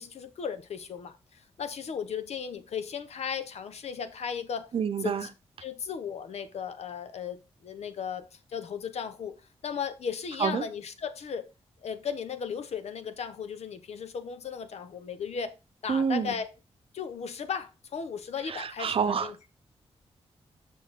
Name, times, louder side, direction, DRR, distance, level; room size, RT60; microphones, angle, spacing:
voice 1, 0.0-4.7 5.0-5.3 5.6-9.3 9.6-11.5 11.8-15.6 15.8-16.5 16.9-19.3, left 7 dB, 75° left, 1.1 m, -36 dB
voice 2, 4.7-5.3 10.4-10.6 15.9-16.3 18.5-19.5, right 6 dB, 60° right, 0.8 m, -28 dB
6.5 x 6.4 x 3.7 m
wide cardioid pair, 120°, 11 cm